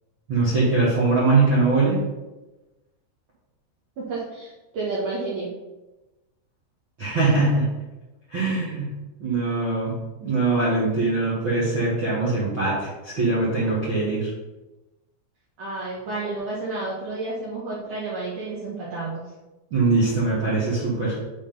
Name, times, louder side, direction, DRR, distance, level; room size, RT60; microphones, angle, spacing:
voice 1, 0.3-2.0 7.0-7.6 8.3-8.9 9.2-9.9 10.2-14.3 19.7-21.3, right 3 dB, 60° right, -9 dB, 1.3 m, -22 dB
voice 2, 4.0-5.5 15.6-19.2, right 3 dB, 80° right, -7 dB, 1.8 m, -30 dB
8.3 x 3.9 x 5.2 m, 1.1 s
omnidirectional pair, 5.6 m